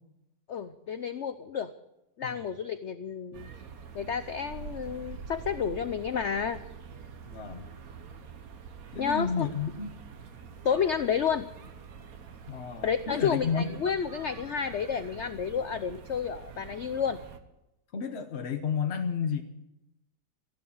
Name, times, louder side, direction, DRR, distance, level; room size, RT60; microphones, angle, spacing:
voice 1, 0.5-1.7 2.2-3.5 3.9-6.6 9.0-9.5 10.6-11.5 12.8-17.2, left 7 dB, 85° left, 11 dB, 0.6 m, -30 dB
sound 1, 3.3-17.4, right 6 dB, 55° right, 1.5 m, -46 dB
voice 2, 7.2-7.7 8.9-9.9 12.5-13.8 17.9-19.4, left 6 dB, 45° left, 5 dB, 1.0 m, -31 dB
15.0 x 11.5 x 8.4 m, 0.89 s
omnidirectional pair, 2.0 m